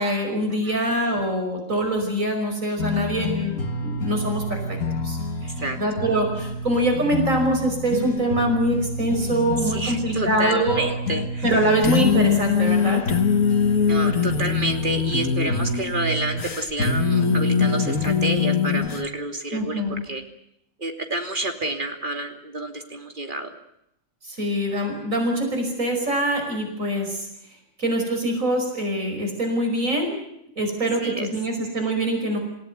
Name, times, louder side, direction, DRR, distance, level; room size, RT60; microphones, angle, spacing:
voice 1, 0.0-5.2 5.8-10.9 11.4-13.0 19.5-20.0 24.2-27.3 27.8-30.1 30.6-32.4, right 1 dB, 85° right, 3 dB, 5.7 m, -24 dB
sound 1, 2.8-19.1, left 5 dB, 85° left, 1.9 m, -24 dB
voice 2, 5.4-5.8 9.6-11.6 13.9-20.2 20.8-23.5 31.0-31.3, right 2 dB, 40° right, 4 dB, 3.0 m, -29 dB
27.5 x 16.5 x 9.6 m, 0.80 s
omnidirectional pair, 1.3 m